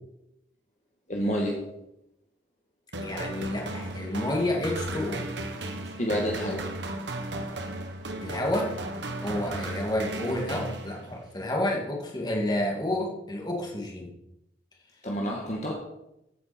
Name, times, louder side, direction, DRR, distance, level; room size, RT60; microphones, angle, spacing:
voice 1, 1.1-1.6 6.0-6.7 9.5-9.7 15.0-15.7, equal, 40° left, -1 dB, 1.8 m, -29 dB
sound 1, 2.9-11.3, right 2 dB, 85° right, 1.5 m, -35 dB
voice 2, 3.0-5.3 8.2-8.7 9.2-14.1, left 1 dB, 25° left, -1 dB, 2.4 m, -30 dB
15.0 x 8.9 x 4.5 m, 0.87 s
head